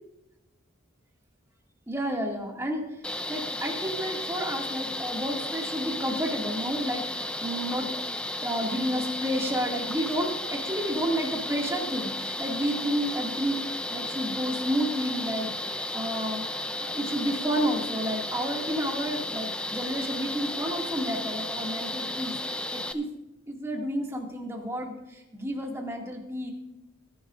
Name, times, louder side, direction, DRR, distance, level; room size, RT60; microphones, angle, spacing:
voice 1, 1.9-2.9 3.3-7.9 8.4-13.6 13.9-23.1 23.5-26.5, equal, 15° right, -1 dB, 2.1 m, -31 dB
sound 1, 3.0-22.9, left 1 dB, 5° left, 0.5 m, -34 dB
20.0 x 11.0 x 2.5 m, 0.94 s
head